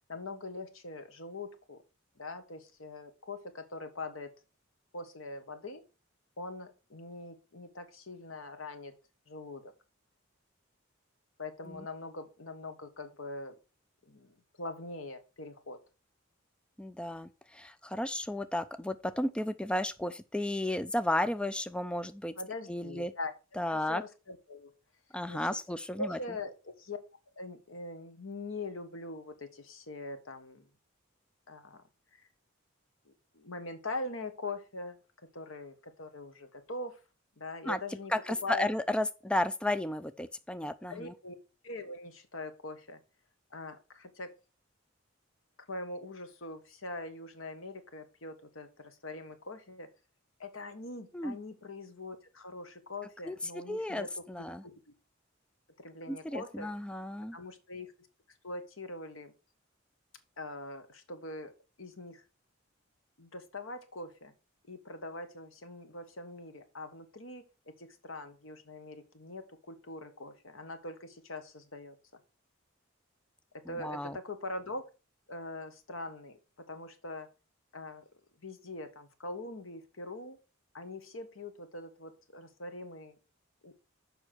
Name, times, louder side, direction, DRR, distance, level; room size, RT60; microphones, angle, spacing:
voice 1, 0.1-1.8 2.2-4.3 4.9-5.8 6.4-8.9 9.3-9.7 11.4-13.5 14.0-15.8 22.4-23.3 23.7-24.7 25.3-25.4 26.0-27.0 27.3-30.7 31.5-32.3 33.0-35.0 35.3-37.0 37.4-38.7 40.8-41.4 41.6-43.0 43.5-44.3 45.7-49.9 50.4-54.7 55.8-56.7 57.3-57.9 58.4-59.3 60.4-61.5 61.8-62.2 63.2-64.3 64.7-72.0 73.5-74.8 75.3-77.3 77.7-78.1 78.4-80.4 80.7-83.2 83.6-83.8, left 2 dB, 80° left, 1.5 m, -42 dB
voice 2, 16.8-22.3 22.7-23.1 23.6-24.0 25.1-26.2 37.6-37.8 38.1-41.1 51.1-51.4 53.2-54.6 56.1-57.4 73.7-74.2, left 1 dB, 5° left, 0.4 m, -33 dB
7.1 x 5.4 x 6.1 m
head